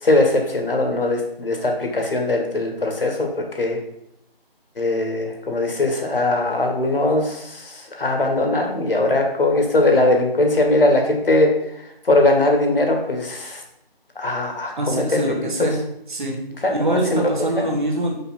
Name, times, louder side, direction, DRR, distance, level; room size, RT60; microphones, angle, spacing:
voice 1, 0.0-3.3 3.6-3.8 4.8-13.6 14.2-15.3 15.6-15.7 16.6-16.7 17.1-17.3 17.6-17.7, left 2 dB, 65° left, 2 dB, 1.7 m, -20 dB
voice 2, 14.8-15.8 16.1-16.4 16.7-18.2, right 1 dB, 50° right, 0 dB, 1.8 m, -24 dB
5.6 x 5.0 x 4.4 m, 0.76 s
figure-of-eight pair, 165°, 30 cm